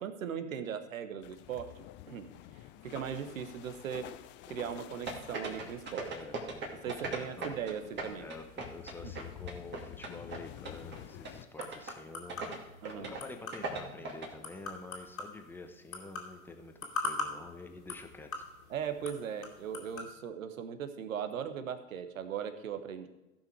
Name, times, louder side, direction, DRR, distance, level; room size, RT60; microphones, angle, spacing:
voice 1, 0.0-1.7 2.1-4.1 4.5-6.1 6.7-8.3 9.0-9.1 12.8-13.1 18.7-23.1, right 8 dB, 70° right, 9 dB, 1.3 m, -39 dB
sound 1, 1.2-11.4, left 13 dB, 30° left, 0.5 m, -50 dB
sound 2, 5.1-7.7 8.0-10.4 10.6-11.0 11.2-11.3 11.6-11.9 12.3-12.6 12.8-13.2 13.5-14.3, right 3 dB, 25° right, 2.3 m, -38 dB
voice 2, 6.1-7.5 8.2-12.6 13.0-18.5, left 3 dB, 5° left, 5 dB, 1.0 m, -48 dB
sound 3, 10.7-20.1, left 3 dB, 80° left, 2.5 m, -43 dB
15.5 x 5.8 x 4.7 m, 1.1 s
hypercardioid pair, 100°, 41 cm